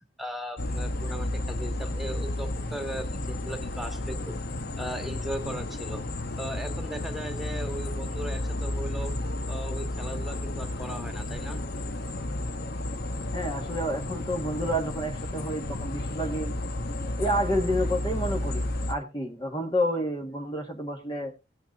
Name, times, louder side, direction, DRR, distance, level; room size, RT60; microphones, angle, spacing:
voice 1, 0.2-4.4 4.8-6.0 6.4-9.1 9.5-11.6, right 1 dB, ahead, 5 dB, 1.9 m, -38 dB
sound 1, 0.6-18.9, left 1 dB, 55° left, 1.0 m, -32 dB
voice 2, 13.3-16.5 17.2-21.3, equal, 25° left, 2 dB, 1.4 m, -29 dB
17.5 x 9.2 x 2.5 m, 0.25 s
head